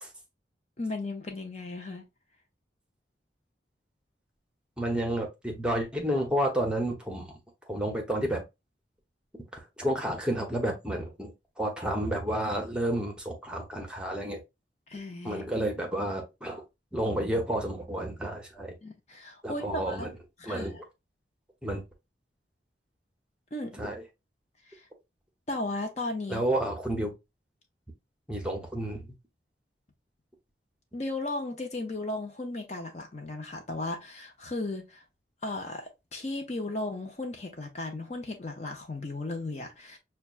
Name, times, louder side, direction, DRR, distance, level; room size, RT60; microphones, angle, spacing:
voice 1, 0.8-2.0 14.9-15.7 18.8-20.1 20.4-20.8 23.5-23.8 24.7-24.8 25.5-26.4 30.9-35.0 35.4-40.0, left 2 dB, 40° left, 0.6 m, -35 dB
voice 2, 4.8-7.3 7.7-8.4 9.5-11.3 11.6-14.4 15.2-16.6 16.9-18.7 19.4-20.1 20.4-20.8 21.6-21.8 23.7-24.0 26.3-27.1 28.3-29.1, right 1 dB, 5° right, 0.7 m, -30 dB
5.8 x 2.3 x 2.4 m
head